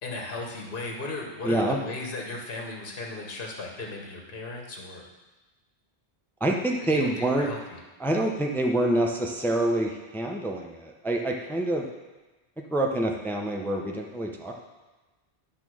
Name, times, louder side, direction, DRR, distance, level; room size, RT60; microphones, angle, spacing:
voice 1, 0.0-5.0 6.8-7.6, left 2 dB, 55° left, 0 dB, 1.3 m, -36 dB
voice 2, 1.4-1.8 6.4-7.5 8.0-11.9 12.7-14.5, right 1 dB, ahead, 1 dB, 0.6 m, -26 dB
10.5 x 3.7 x 6.2 m, 1.2 s
omnidirectional pair, 1.1 m